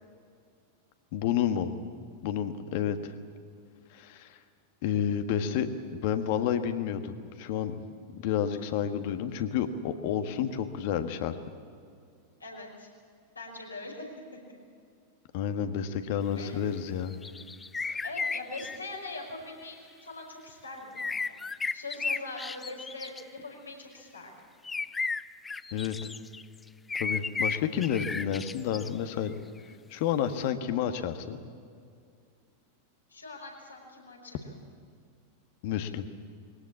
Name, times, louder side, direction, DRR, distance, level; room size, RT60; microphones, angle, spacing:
voice 1, 1.1-1.7 2.2-3.1 3.9-4.3 4.8-11.3 15.3-17.1 17.8-18.0 25.7-26.1 27.0-29.3 29.9-31.4 35.6-36.1, left 9 dB, 50° left, 8 dB, 1.6 m, -30 dB
voice 2, 12.4-12.9 13.4-14.1 16.3-16.7 18.0-21.4 21.7-24.3 33.1-34.6, left 2 dB, 80° left, -1 dB, 5.6 m, -42 dB
sound 1, 17.1-18.8 21.0-23.2 24.6-26.4 26.9-28.9, left 4 dB, 15° left, 0.5 m, -34 dB
22.0 x 18.0 x 8.5 m, 2.3 s
figure-of-eight pair, 90°, 0 cm